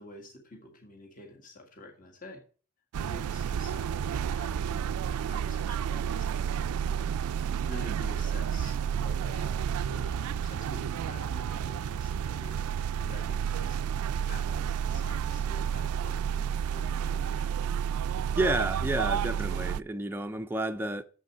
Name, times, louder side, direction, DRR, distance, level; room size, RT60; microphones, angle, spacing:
voice 1, 0.0-2.4 3.0-14.0 14.3-17.5, left 2 dB, 35° left, 1.8 m, -49 dB
sound 1, 2.9-19.8, right 8 dB, 80° right, 0.3 m, -31 dB
voice 2, 18.4-21.0, right 1 dB, 10° right, 0.4 m, -30 dB
7.5 x 6.5 x 6.0 m
head